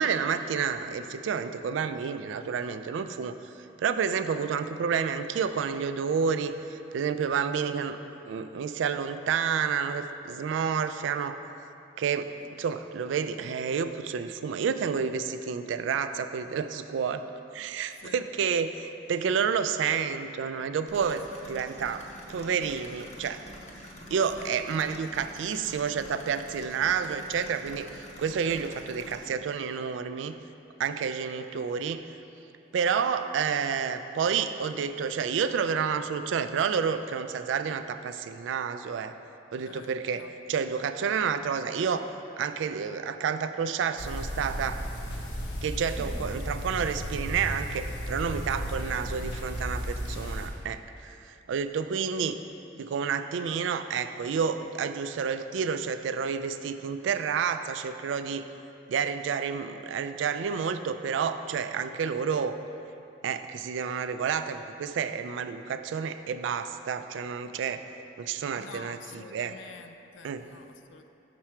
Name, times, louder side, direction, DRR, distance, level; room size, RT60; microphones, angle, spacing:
voice 1, 0.0-3.3 3.8-8.0 8.3-11.4 12.0-12.3 12.6-17.2 17.5-22.0 22.3-23.4 24.1-27.9 28.2-30.4 30.8-32.1 32.7-39.1 39.5-42.1 42.4-44.8 45.6-52.4 52.8-58.5 58.9-62.6 63.2-67.8 68.2-69.5 70.2-70.5, right 6 dB, 90° right, 10 dB, 0.3 m, -30 dB
sound 1, 20.9-29.3, equal, 35° left, 0.8 m, -46 dB
voice 2, 21.1-21.5 24.3-24.5 39.6-40.3 48.4-49.0 49.3-49.5 68.6-71.1, left 5 dB, 85° left, 8 dB, 0.4 m, -48 dB
sound 2, 44.0-50.5, equal, 65° left, 1.0 m, -34 dB
5.9 x 5.8 x 4.4 m, 2.8 s
head